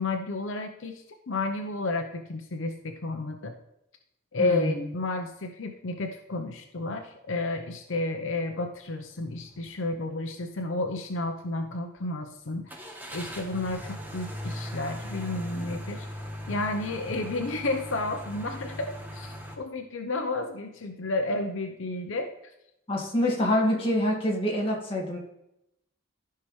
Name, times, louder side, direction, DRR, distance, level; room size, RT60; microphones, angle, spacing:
voice 1, 0.0-3.5 4.3-12.8 13.1-16.1 16.5-22.3, left 2 dB, 80° left, 5 dB, 0.8 m, -31 dB
voice 2, 4.4-4.9 22.9-25.2, left 1 dB, 30° left, -2 dB, 1.9 m, -26 dB
sound 1, 9.4-9.7 10.1-10.2 12.7-19.5, equal, 10° right, 1.2 m, -39 dB
14.0 x 5.7 x 3.2 m, 0.84 s
head